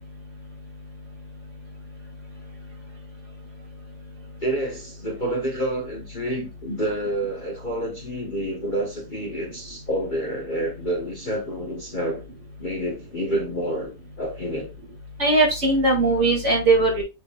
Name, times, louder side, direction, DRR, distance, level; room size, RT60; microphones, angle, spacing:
voice 1, 4.4-12.2 12.6-13.9 14.2-14.7, right 1 dB, 30° left, 1.4 m, -28 dB
voice 2, 15.2-17.0, right 2 dB, 45° right, 3.3 m, -19 dB
7.8 x 6.4 x 2.5 m
omnidirectional pair, 1.8 m